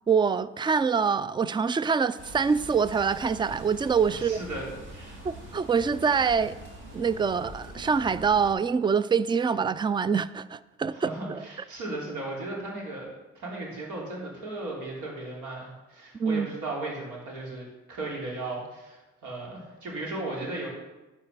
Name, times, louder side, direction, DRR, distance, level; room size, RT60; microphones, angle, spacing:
voice 1, 0.1-4.4 5.2-6.6 6.9-11.4 16.1-16.5, right 6 dB, 15° right, 0.3 m, -25 dB
sound 1, 2.2-8.5, right 1 dB, 40° right, 2.8 m, -44 dB
voice 2, 4.1-5.2 10.9-20.7, right 2 dB, 80° right, 3.4 m, -36 dB
11.5 x 4.8 x 6.6 m
cardioid pair, 90°, 30 cm